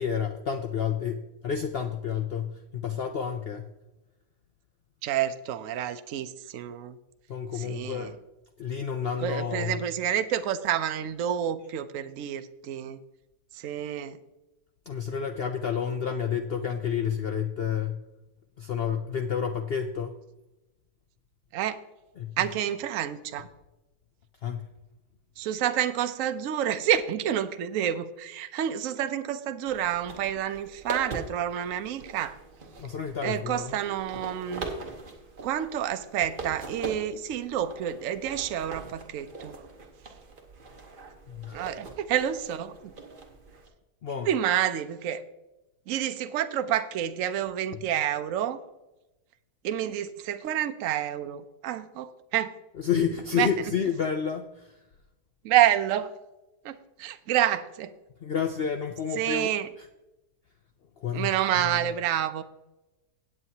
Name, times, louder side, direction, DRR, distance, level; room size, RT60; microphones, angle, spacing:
voice 1, 0.0-3.7 7.3-8.1 8.6-9.8 14.9-18.0 18.6-20.2 22.2-22.4 24.4-24.7 32.8-33.8 41.3-41.6 44.0-44.3 52.8-54.7 58.2-59.5 61.0-61.3 61.7-61.9, left 7 dB, 80° left, 5 dB, 0.5 m, -30 dB
voice 2, 5.0-7.0 7.5-8.2 9.2-13.0 13.5-14.2 21.5-21.8 22.4-23.5 25.4-32.4 33.2-34.7 35.4-39.6 41.5-42.9 44.2-45.2 45.9-48.6 49.6-52.5 53.3-53.5 55.4-56.1 56.6-57.9 59.1-59.7 61.1-62.4, right 10 dB, 65° right, 10 dB, 0.9 m, -28 dB
sound 1, 29.7-43.7, right 3 dB, 35° right, 1.2 m, -42 dB
17.0 x 7.9 x 2.8 m, 0.99 s
omnidirectional pair, 1.7 m